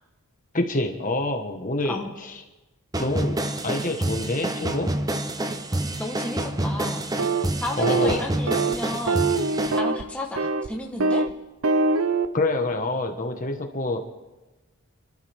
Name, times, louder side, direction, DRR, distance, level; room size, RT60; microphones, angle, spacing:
voice 1, 0.5-2.4 3.0-3.4 3.6-4.9 7.8-8.2 12.3-14.0, left 2 dB, 35° left, 4 dB, 1.6 m, -26 dB
sound 1, 2.9-9.8, right 1 dB, 15° right, 0.7 m, -28 dB
voice 2, 6.0-7.0 7.6-9.4 9.7-11.3, left 1 dB, 5° left, 0 dB, 1.4 m, -33 dB
sound 2, 7.2-7.5 7.8-8.1 8.5-8.8 9.1-10.0 10.4-10.7 11.0-11.3 11.6-12.3, right 3 dB, 70° right, 0.7 m, -23 dB
30.0 x 13.0 x 3.7 m, 1.1 s
head